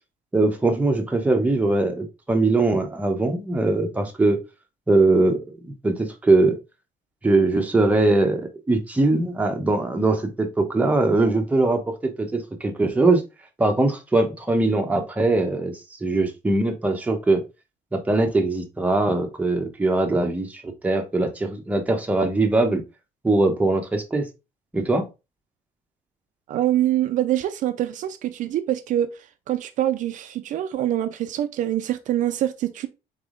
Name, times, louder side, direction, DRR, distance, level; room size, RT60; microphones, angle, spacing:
voice 1, 0.3-4.4 4.9-6.6 7.2-13.2 13.6-17.4 17.9-22.8 23.2-24.3 24.7-25.1, right 2 dB, 10° right, 0.8 m, -21 dB
voice 2, 26.5-29.1 29.5-32.9, right 12 dB, 65° right, 0.4 m, -24 dB
4.0 x 3.5 x 3.7 m
cardioid pair, 145°, 14 cm